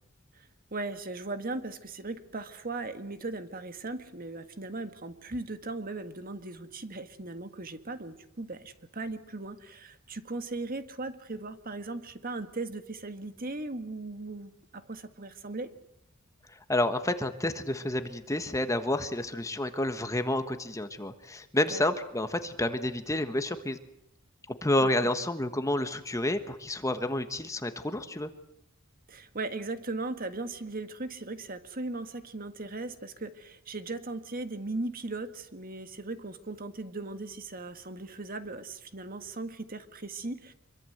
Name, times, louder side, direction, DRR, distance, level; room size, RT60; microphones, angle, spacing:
voice 1, 0.3-15.7 21.7-21.8 24.8-25.1 29.1-40.5, right 2 dB, 45° right, 9 dB, 1.7 m, -38 dB
voice 2, 16.5-23.8 24.5-28.3, left 1 dB, 15° left, 9 dB, 1.4 m, -30 dB
25.5 x 23.5 x 8.0 m, 0.76 s
head